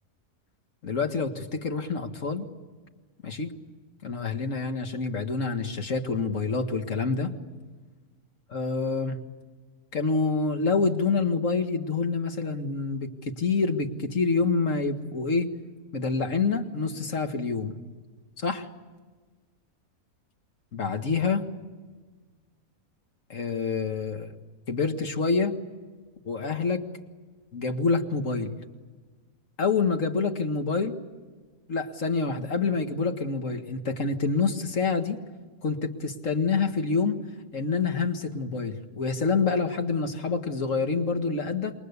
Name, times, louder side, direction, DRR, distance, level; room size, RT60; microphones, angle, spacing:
voice 1, 0.8-2.5 3.2-3.5 4.0-7.3 8.5-9.2 9.9-15.5 15.9-17.8 18.4-18.7 20.7-21.4 23.3-24.3 24.7-25.5 26.3-26.9 27.5-28.5 29.6-31.0 31.7-35.2 35.6-37.2 37.5-41.7, left 4 dB, 65° left, 6 dB, 2.2 m, -27 dB
28.0 x 23.5 x 8.3 m, 1.4 s
omnidirectional pair, 1.5 m